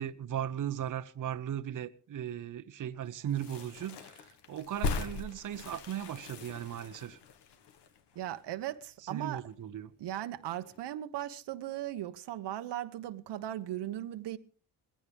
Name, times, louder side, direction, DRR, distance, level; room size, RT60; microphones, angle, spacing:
voice 1, 0.0-7.2 9.1-9.9, right 10 dB, 50° right, 0.9 m, -37 dB
sound 1, 3.2-8.9 9.2-9.3 9.4-10.4 10.6-10.9, left 4 dB, 80° left, 1.7 m, -40 dB
voice 2, 8.1-9.5 10.0-14.4, right 12 dB, 85° right, 1.2 m, -38 dB
21.0 x 16.0 x 3.5 m
cardioid pair, 100°, 40 cm